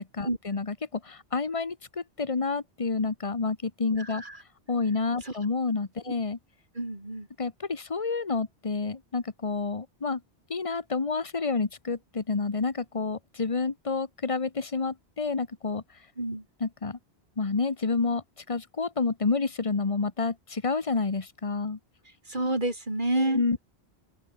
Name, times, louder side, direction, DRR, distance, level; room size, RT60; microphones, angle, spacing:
voice 1, 0.0-4.2 4.7-6.4 7.4-10.2 10.5-15.8 16.6-17.0 17.4-21.8 23.2-23.6, left 4 dB, 30° left, 1.2 m, -29 dB
voice 2, 4.0-4.4 5.2-5.4 6.7-7.3 16.2-16.4 22.3-23.6, right 1 dB, 45° right, 5.2 m, -29 dB
open air
omnidirectional pair, 1.1 m